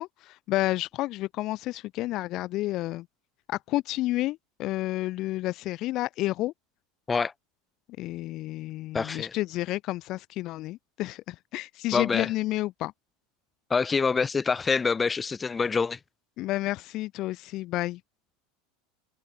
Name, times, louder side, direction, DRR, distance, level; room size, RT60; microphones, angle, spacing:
voice 1, 0.0-3.1 3.5-6.5 8.0-12.9 16.4-18.0, left 17 dB, 50° left, 0.6 m, -30 dB
voice 2, 8.9-9.3 11.9-12.3 13.7-16.0, left 5 dB, 20° left, 1.3 m, -26 dB
hypercardioid pair, 100°, 0 cm